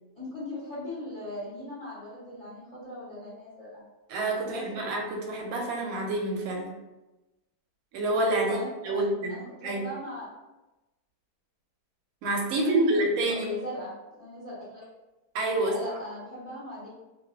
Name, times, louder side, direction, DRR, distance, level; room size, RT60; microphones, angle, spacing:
voice 1, 0.1-3.9 4.4-4.6 8.4-10.3 12.7-13.0 13.4-14.8 15.6-16.9, left 1 dB, 50° left, -10 dB, 0.4 m, -39 dB
voice 2, 4.1-6.7 7.9-8.6 8.8-9.4 9.6-9.8 12.2-13.4 15.3-15.7, right 2 dB, 70° right, 0 dB, 0.9 m, -27 dB
2.4 x 2.4 x 2.3 m, 1.0 s
omnidirectional pair, 1.8 m